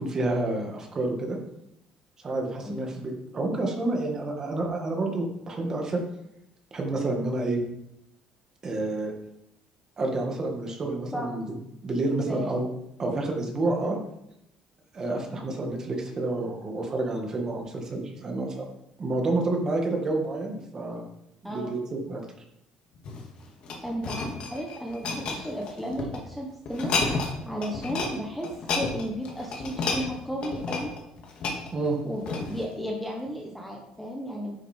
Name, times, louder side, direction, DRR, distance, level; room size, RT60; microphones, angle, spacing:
voice 1, 0.0-1.4 2.2-6.0 6.7-7.6 8.6-9.1 10.0-11.5 11.8-12.7 13.0-14.0 14.9-18.6 19.0-21.1 21.4-22.2 31.7-32.0, right 2 dB, 25° right, 1 dB, 2.0 m, -29 dB
voice 2, 12.2-12.5 21.4-21.7 23.8-27.1 27.4-30.9 32.0-34.6, equal, ahead, 0 dB, 1.1 m, -34 dB
sound 1, 22.9-26.2 26.7-27.4 27.6-28.1 28.4-32.7 33.3-33.4, left 3 dB, 50° left, 2.1 m, -31 dB
9.9 x 7.1 x 4.5 m, 0.80 s
cardioid pair, 160°, 2 cm